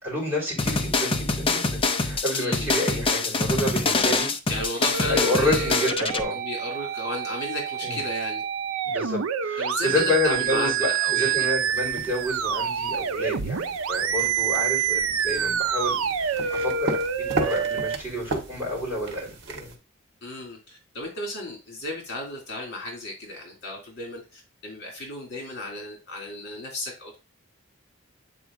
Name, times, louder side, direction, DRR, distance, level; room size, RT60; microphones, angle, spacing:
voice 1, 0.0-4.3 5.0-6.4 7.8-8.0 8.9-13.6 13.9-17.0 17.3-19.7, left 1 dB, 10° right, -5 dB, 3.8 m, -29 dB
sound 1, 0.6-6.2, left 3 dB, 25° left, 0.6 m, -25 dB
voice 2, 2.4-2.7 4.5-5.7 6.3-8.4 9.6-11.5 20.2-27.2, left 1 dB, 55° left, 0 dB, 2.6 m, -34 dB
sound 2, 4.9-18.0, right 8 dB, 85° right, 0.5 m, -27 dB
sound 3, 11.6-19.8, right 2 dB, 60° right, 1.5 m, -36 dB
8.4 x 4.6 x 2.5 m, 0.29 s
head